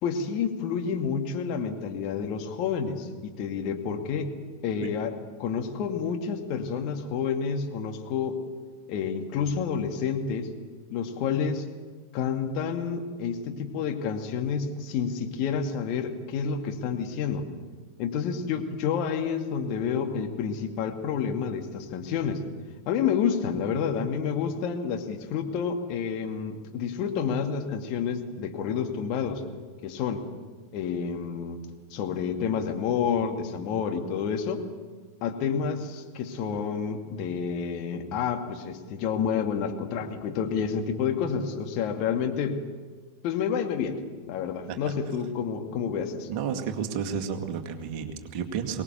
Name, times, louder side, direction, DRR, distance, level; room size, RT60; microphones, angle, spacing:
voice 1, 0.0-4.3 4.6-5.1 5.4-8.4 8.9-10.5 10.9-11.7 12.1-17.5 18.0-22.4 22.9-29.4 29.8-30.3 30.7-31.6 31.9-34.7 35.2-42.6 43.2-44.0 44.3-46.3, left 6 dB, 40° left, 4 dB, 2.2 m, -29 dB
voice 2, 46.3-48.8, right 7 dB, 45° right, 5 dB, 2.1 m, -32 dB
23.5 x 19.0 x 6.8 m, 1.4 s
figure-of-eight pair, 90°, 0 cm